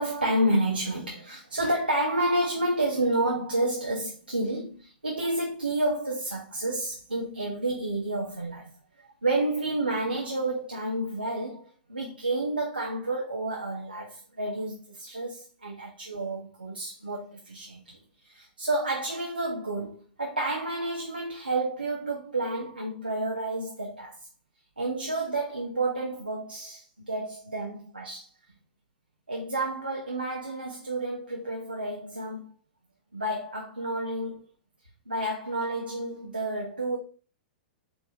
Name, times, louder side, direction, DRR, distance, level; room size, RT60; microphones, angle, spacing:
voice 1, 0.0-8.7 9.0-18.0 18.2-24.2 24.8-28.3 29.3-32.5 33.1-34.4 35.1-37.0, right 1 dB, 90° right, 0.8 m, -30 dB
4.5 x 3.4 x 2.8 m
figure-of-eight pair, 105°, 5 cm